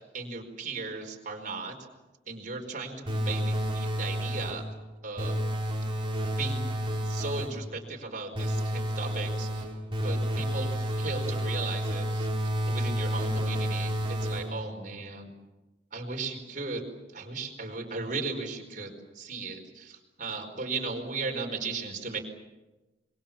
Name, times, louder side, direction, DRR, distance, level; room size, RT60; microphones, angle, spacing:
voice 1, 0.1-1.7 2.3-4.6 5.0-5.4 6.2-6.7 7.0-9.6 10.0-12.3 12.7-15.3 15.9-16.9 17.1-22.2, right 3 dB, 50° right, 2 dB, 4.7 m, -36 dB
sound 1, 3.1-4.7 5.2-7.7 8.3-14.7, equal, 30° right, 4.3 m, -30 dB
26.5 x 23.0 x 7.3 m, 1.1 s
head